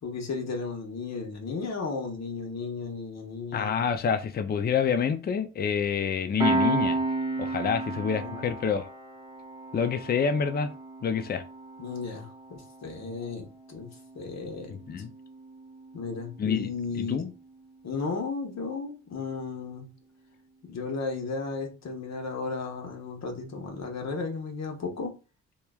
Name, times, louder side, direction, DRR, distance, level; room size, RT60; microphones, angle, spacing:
voice 1, 0.0-3.7 8.1-8.4 11.8-13.9 14.1-14.7 15.9-17.3 17.8-19.9 20.6-25.1, left 4 dB, 50° left, 1.0 m, -34 dB
voice 2, 3.5-7.0 7.4-8.9 9.7-10.7 11.0-11.4 14.7-15.1 16.4-17.3, left 6 dB, 30° left, 0.4 m, -27 dB
Piano, 6.4-17.5, right 2 dB, 15° right, 0.8 m, -34 dB
3.0 x 2.2 x 2.3 m
supercardioid pair, 65°, 33 cm